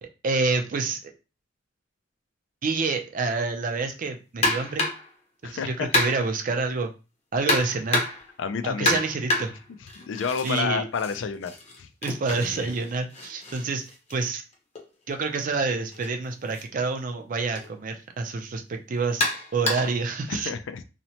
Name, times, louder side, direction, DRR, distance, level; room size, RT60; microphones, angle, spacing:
voice 1, 0.0-1.1 2.6-4.9 5.4-6.9 7.3-8.0 8.6-9.5 10.4-10.9 12.0-13.8 14.1-14.4 15.1-19.3 19.5-20.5, right 4 dB, 45° right, 5 dB, 0.4 m, -28 dB
sound 1, 4.4-5.1 5.9-6.4 7.5-8.3 8.8-10.6 10.9-14.8 15.9-16.1 16.5-16.6 17.6-17.7 19.2-20.0, left 2 dB, 35° left, 0.7 m, -28 dB
voice 2, 5.4-5.9 8.4-9.0 10.0-11.9 12.4-12.7 20.3-20.8, left 6 dB, 75° left, 11 dB, 0.3 m, -30 dB
2.8 x 2.1 x 2.7 m, 0.31 s
head